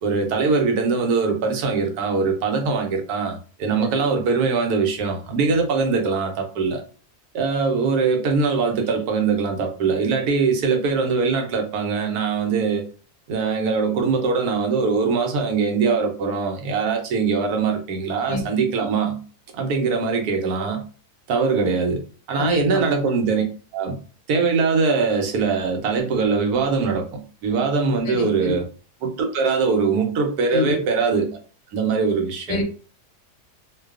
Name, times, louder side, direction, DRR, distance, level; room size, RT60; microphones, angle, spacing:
voice 1, 0.0-6.8 7.3-12.9 13.3-19.2 19.5-20.8 21.3-22.0 22.3-23.4 23.7-24.0 24.3-28.7 29.0-31.3 31.7-32.6, right 4 dB, 80° right, 1.1 m, -22 dB
voice 2, 22.4-22.8 28.0-28.6 30.5-30.8 32.5-32.6, left 3 dB, 65° left, 0.9 m, -27 dB
2.6 x 2.2 x 2.3 m
omnidirectional pair, 1.7 m